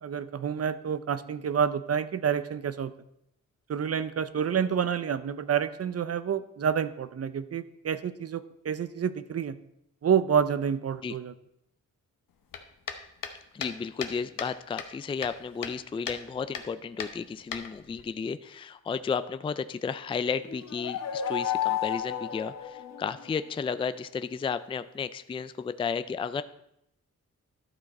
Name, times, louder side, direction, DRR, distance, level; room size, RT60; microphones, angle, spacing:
voice 1, 0.0-2.9 3.7-9.6 10.0-11.3, right 7 dB, 50° right, 13 dB, 0.6 m, -28 dB
sound 1, 12.5-14.5 14.8-15.8 16.1-16.2 16.5-16.7 17.0-18.0, left 7 dB, 90° left, 0.9 m, -37 dB
voice 2, 13.5-26.4, left 6 dB, 15° left, 13 dB, 0.3 m, -33 dB
sound 2, 20.5-23.4, left 10 dB, 55° left, 1.0 m, -32 dB
12.0 x 6.3 x 4.2 m, 0.79 s
cardioid pair, 90°, 32 cm